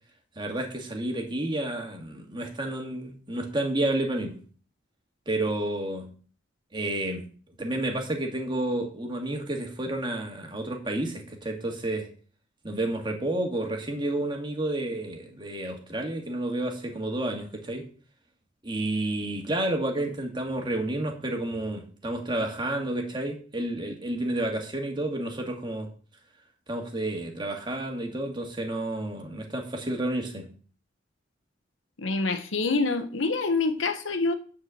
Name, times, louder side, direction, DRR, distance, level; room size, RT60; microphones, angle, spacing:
voice 1, 0.4-4.4 5.3-6.1 6.7-7.3 7.6-12.1 12.6-17.9 18.6-25.9 26.7-30.5, right 1 dB, 25° right, 2.1 m, -30 dB
voice 2, 32.0-34.3, left 3 dB, 85° left, 1.2 m, -26 dB
9.9 x 4.6 x 7.7 m
head